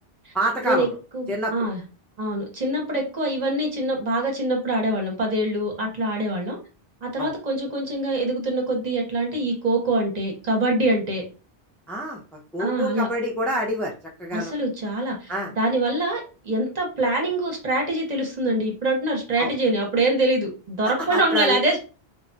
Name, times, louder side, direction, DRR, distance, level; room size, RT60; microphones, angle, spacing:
voice 1, 0.3-1.0 1.3-1.7 7.2-7.3 11.9-12.2 12.5-13.9 14.2-14.5 15.3-15.5 19.4-19.5 21.1-21.6, right 1 dB, ahead, -2 dB, 0.4 m, -26 dB
voice 2, 1.1-1.8 2.2-6.6 7.0-11.2 12.6-13.1 14.3-21.8, right 1 dB, 45° right, 1 dB, 0.8 m, -24 dB
2.2 x 2.1 x 3.8 m, 0.34 s
omnidirectional pair, 1.1 m